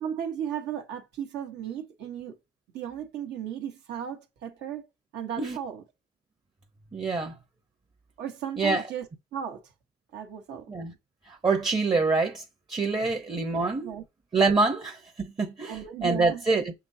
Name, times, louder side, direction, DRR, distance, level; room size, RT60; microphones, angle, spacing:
voice 1, 0.0-2.4 2.7-4.9 5.1-5.8 8.2-9.1 9.3-9.6 10.1-10.7 13.8-14.0 15.6-16.4, right 9 dB, 75° right, 1.0 m, -35 dB
voice 2, 6.9-7.3 8.6-8.9 10.7-10.9 11.3-13.9 14.3-16.7, right 3 dB, 25° right, 0.7 m, -26 dB
5.8 x 3.1 x 2.6 m
supercardioid pair, 80°, 18 cm